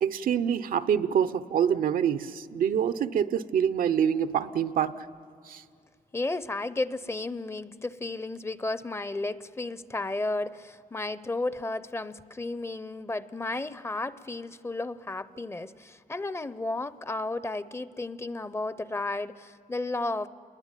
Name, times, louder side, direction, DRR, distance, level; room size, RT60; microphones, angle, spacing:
voice 1, 0.0-4.9 5.5-5.6, right 8 dB, 80° right, 13 dB, 0.8 m, -26 dB
voice 2, 6.1-20.3, left 2 dB, 20° left, 16 dB, 0.6 m, -33 dB
28.0 x 22.0 x 9.1 m, 2.2 s
cardioid pair, 110°, 14 cm